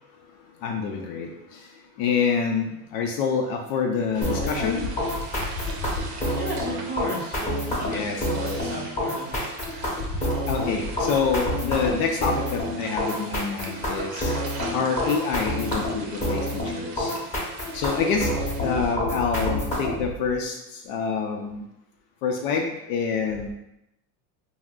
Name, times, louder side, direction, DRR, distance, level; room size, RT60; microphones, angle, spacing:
voice 1, 0.6-1.3 2.0-4.9 7.9-8.2 8.4-8.6 10.5-14.3 14.7-17.1 17.7-18.3 18.6-20.5 20.9-21.6 22.2-23.5, left 5 dB, 55° left, 2 dB, 0.4 m, -26 dB
sound 1, 4.1-19.0, right 3 dB, 80° right, 0.7 m, -41 dB
sound 2, 4.2-20.1, left 1 dB, 15° left, 0.7 m, -28 dB
voice 2, 6.3-9.4, right 1 dB, 20° right, -3 dB, 0.7 m, -35 dB
2.4 x 2.1 x 3.5 m, 0.86 s
supercardioid pair, 115°, 46 cm